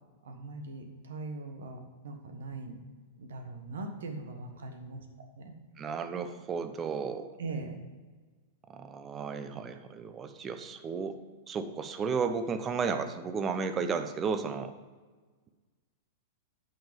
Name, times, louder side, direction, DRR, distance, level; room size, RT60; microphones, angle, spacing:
voice 1, 0.2-2.8 3.2-5.0 5.4-5.5 7.4-7.8, right 3 dB, 70° right, 5 dB, 1.3 m, -40 dB
voice 2, 5.8-7.3 8.7-11.2 11.5-14.7, right 5 dB, 25° right, 9 dB, 0.8 m, -33 dB
9.1 x 5.5 x 5.2 m, 1.4 s
hypercardioid pair, 100°, 0 cm